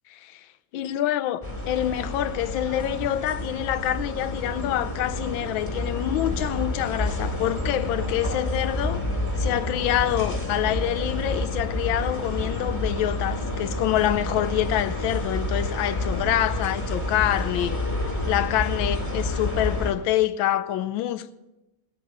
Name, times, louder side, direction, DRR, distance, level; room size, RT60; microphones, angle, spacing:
voice 1, 0.1-0.4 0.7-9.0 9.4-17.8 18.3-21.3, left 12 dB, 85° left, 1.4 m, -26 dB
sound 1, 1.4-19.9, left 2 dB, 10° left, 2.0 m, -29 dB
18.5 x 8.6 x 5.4 m
omnidirectional pair, 2.1 m